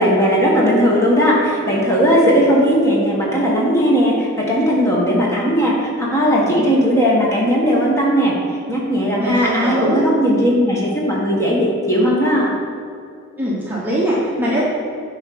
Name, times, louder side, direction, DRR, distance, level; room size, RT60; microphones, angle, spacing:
voice 1, 0.0-8.3 8.7-12.5, equal, 15° left, -4 dB, 1.5 m, -17 dB
voice 2, 9.2-10.0 13.4-14.6, right 1 dB, 10° right, -7 dB, 1.1 m, -21 dB
9.0 x 3.7 x 6.0 m, 2.5 s
head